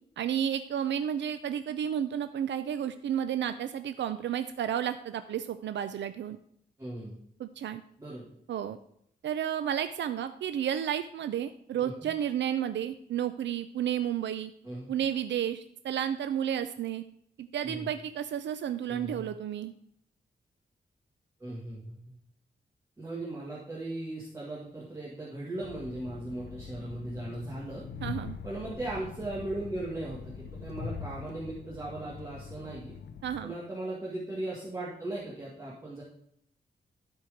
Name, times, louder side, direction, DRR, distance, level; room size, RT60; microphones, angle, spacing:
voice 1, 0.2-6.4 7.4-7.8 8.5-8.8 9.2-14.5 14.9-17.0 17.4-19.7 28.0-28.4 33.2-33.5, right 9 dB, 85° right, 10 dB, 0.5 m, -32 dB
voice 2, 6.8-7.2 8.0-8.2 11.8-12.1 14.6-14.9 17.6-17.9 18.9-19.2 21.4-22.1 23.0-27.8 28.4-32.9 33.4-36.0, right 2 dB, 15° right, -6 dB, 1.8 m, -38 dB
Train, 25.6-33.4, left 6 dB, 70° left, 0.7 m, -43 dB
12.5 x 4.6 x 5.0 m, 0.69 s
wide cardioid pair, 160°, 18 cm